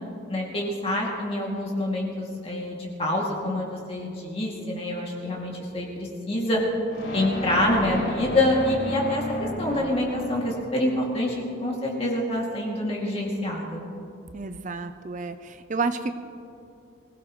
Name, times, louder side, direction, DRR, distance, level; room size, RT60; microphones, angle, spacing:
voice 1, 0.3-6.6 7.1-13.8, left 1 dB, 30° left, -2 dB, 2.4 m, -26 dB
sound 1, 6.9-11.0, left 2 dB, 65° left, 4.3 m, -33 dB
voice 2, 14.3-15.4 15.7-16.1, right 4 dB, 35° right, 10 dB, 0.5 m, -29 dB
24.5 x 17.0 x 3.1 m, 2.6 s
head